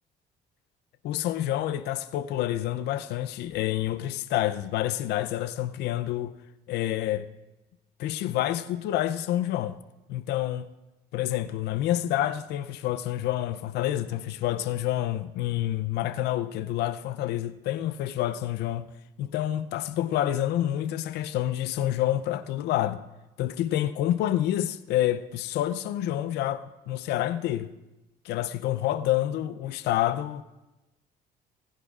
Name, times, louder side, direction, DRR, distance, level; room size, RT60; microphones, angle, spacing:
voice 1, 1.0-6.3 6.7-7.3 8.0-9.8 10.1-10.6 11.1-18.9 19.2-23.0 23.4-27.7 28.2-30.4, left 13 dB, 80° left, 0.5 m, -28 dB
26.0 x 10.5 x 2.4 m
cardioid pair, 110°, 17 cm